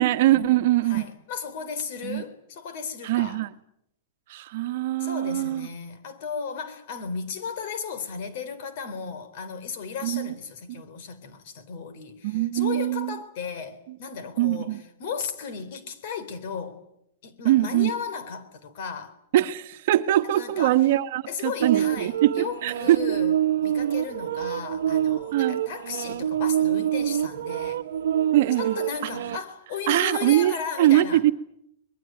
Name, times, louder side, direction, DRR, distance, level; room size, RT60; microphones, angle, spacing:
voice 1, 0.0-1.1 2.0-2.2 3.0-3.5 4.3-5.7 10.0-10.3 12.2-13.2 14.4-14.8 17.4-17.9 19.3-23.2 25.3-25.6 28.3-28.8 29.9-31.3, right 14 dB, 55° right, 1.3 m, -22 dB
voice 2, 0.8-3.4 5.0-16.8 17.2-19.2 20.3-20.9 21.3-27.8 28.5-31.2, left 6 dB, 50° left, 3.8 m, -35 dB
sound 1, 21.6-29.4, right 10 dB, 85° right, 1.0 m, -26 dB
24.5 x 21.5 x 9.3 m
supercardioid pair, 160°, 0 cm